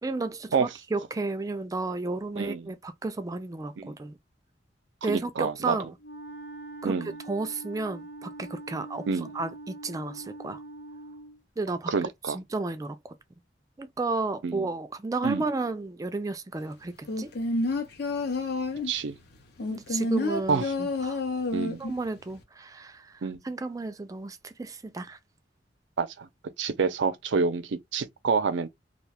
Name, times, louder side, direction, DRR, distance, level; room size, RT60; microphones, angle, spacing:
voice 1, 0.0-4.1 5.0-5.9 6.8-7.0 7.3-10.6 11.6-11.9 12.3-13.1 13.8-17.3 19.7-21.2 21.8-25.2, right 3 dB, 20° right, 0.3 m, -33 dB
voice 2, 5.1-5.8 6.8-7.1 9.1-9.3 11.9-12.4 14.4-14.6 15.2-15.4 18.9-19.1 20.5-20.7 21.5-21.8 23.2-23.4 26.0-26.3 26.6-28.7, right 5 dB, 90° right, 0.4 m, -27 dB
Wind instrument woodwind instrument, 6.0-11.4, right 2 dB, 80° left, 1.0 m, -43 dB
sound 1, 17.1-19.0 19.6-22.0 22.3-22.4, left 2 dB, 60° left, 0.7 m, -29 dB
2.4 x 2.3 x 3.3 m
head